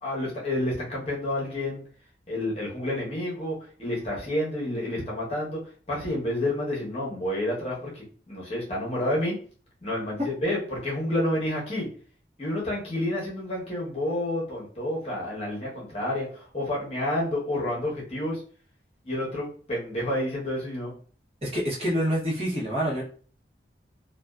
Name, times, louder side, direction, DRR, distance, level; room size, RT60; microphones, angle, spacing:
voice 1, 0.0-1.8 2.3-5.6 5.9-9.3 9.8-11.9 12.4-18.4 19.0-20.9, left 1 dB, 35° left, -4 dB, 1.0 m, -29 dB
voice 2, 21.4-23.0, equal, 35° right, -6 dB, 0.9 m, -27 dB
2.6 x 2.2 x 2.2 m, 0.43 s
head